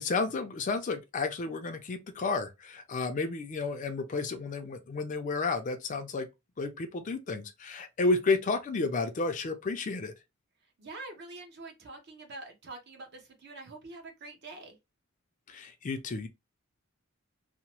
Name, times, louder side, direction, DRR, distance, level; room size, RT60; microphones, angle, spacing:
voice 1, 0.0-6.3 6.6-10.1 15.5-16.3, left 3 dB, 35° left, 0.4 m, -31 dB
voice 2, 10.8-14.8, right 2 dB, 55° right, 0.8 m, -45 dB
2.8 x 2.0 x 2.8 m
head